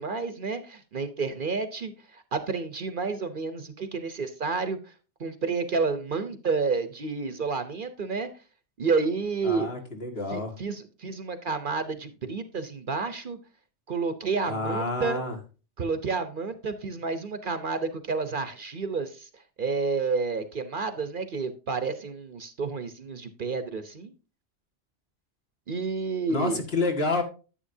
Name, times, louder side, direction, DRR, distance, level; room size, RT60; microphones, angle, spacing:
voice 1, 0.0-4.8 5.2-8.3 8.8-9.7 10.3-13.4 13.9-15.2 15.8-19.3 19.6-24.1 25.7-26.6, right 4 dB, 50° right, 11 dB, 0.9 m, -30 dB
voice 2, 9.4-10.5 14.5-15.4 26.3-27.2, left 3 dB, 60° left, 4 dB, 2.0 m, -29 dB
10.0 x 9.1 x 2.7 m, 0.33 s
omnidirectional pair, 1.2 m